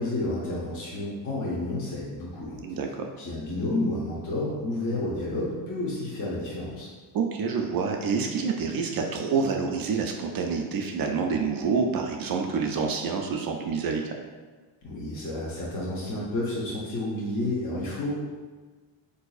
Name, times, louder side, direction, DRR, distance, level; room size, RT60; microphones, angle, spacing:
voice 1, 0.0-2.8 3.2-6.9 14.8-18.2, left 1 dB, 40° left, -6 dB, 0.8 m, -30 dB
voice 2, 2.6-3.1 7.1-14.0, right 5 dB, 50° right, 2 dB, 0.4 m, -27 dB
3.9 x 2.6 x 2.3 m, 1.4 s
cardioid pair, 80°, 48 cm